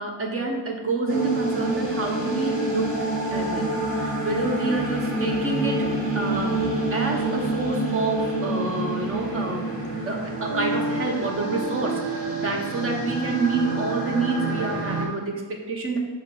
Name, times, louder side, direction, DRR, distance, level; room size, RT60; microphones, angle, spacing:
voice 1, 0.0-5.9 6.1-6.7 6.9-9.7 10.1-16.0, right 3 dB, 35° right, 2 dB, 0.9 m, -28 dB
sound 1, 1.1-15.1, right 1 dB, 90° right, 2.0 m, -27 dB
5.0 x 4.4 x 5.7 m, 1.3 s
cardioid pair, 175°, 38 cm